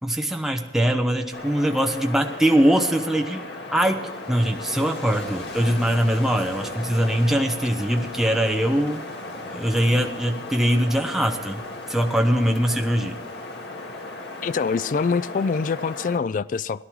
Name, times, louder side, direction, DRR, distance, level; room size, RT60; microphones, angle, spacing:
voice 1, 0.0-3.4 3.7-9.0 9.5-11.6 11.9-13.2, equal, ahead, 1.0 m, -22 dB
Wind, 1.3-16.2, left 2 dB, 75° left, 1.8 m, -36 dB
voice 2, 14.4-16.8, left 5 dB, 45° left, 0.3 m, -24 dB
17.5 x 11.5 x 4.7 m
head